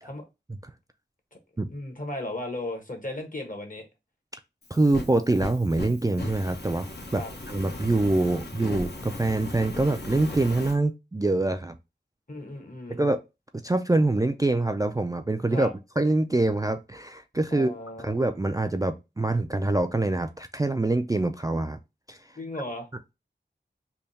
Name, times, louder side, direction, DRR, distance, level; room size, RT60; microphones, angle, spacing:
voice 1, 1.7-3.9 7.1-7.3 12.3-13.0 15.5-15.7 17.5-18.2 22.4-22.9, left 1 dB, 45° left, 1.2 m, -35 dB
Fire, 4.6-10.7, left 2 dB, 60° left, 0.9 m, -37 dB
voice 2, 4.7-11.8 12.9-13.2 13.6-15.7 16.0-17.7 18.0-21.8 22.1-22.2, right 2 dB, 20° right, 0.3 m, -25 dB
3.4 x 2.3 x 3.9 m
wide cardioid pair, 45°, 19 cm